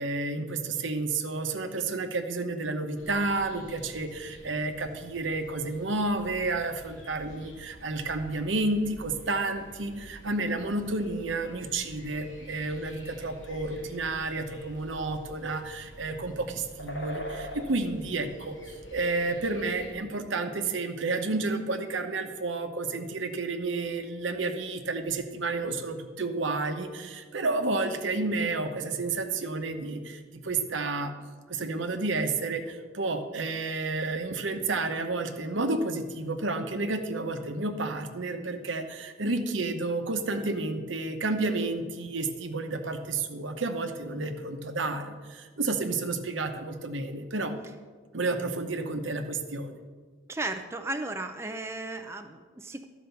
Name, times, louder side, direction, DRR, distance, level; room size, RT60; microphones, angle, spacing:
voice 1, 0.0-18.6 18.9-31.1 31.5-47.6 48.1-49.8, right 3 dB, 75° right, 7 dB, 0.9 m, -31 dB
sound 1, 3.0-19.9, equal, 85° left, 2.1 m, -46 dB
voice 2, 50.3-52.9, right 2 dB, 15° right, 6 dB, 0.4 m, -35 dB
12.5 x 4.9 x 6.9 m, 1.5 s
head